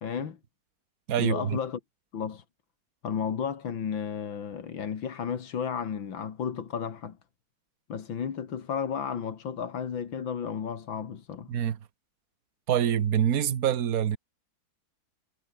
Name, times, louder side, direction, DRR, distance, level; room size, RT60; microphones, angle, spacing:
voice 1, 0.0-0.4 1.2-1.8 2.1-2.4 3.0-7.2 7.9-11.5, left 7 dB, 90° left, 2.6 m, -33 dB
voice 2, 1.1-1.6 11.5-11.8 12.7-14.2, right 9 dB, 50° right, 1.5 m, -25 dB
omnidirectional pair, 2.1 m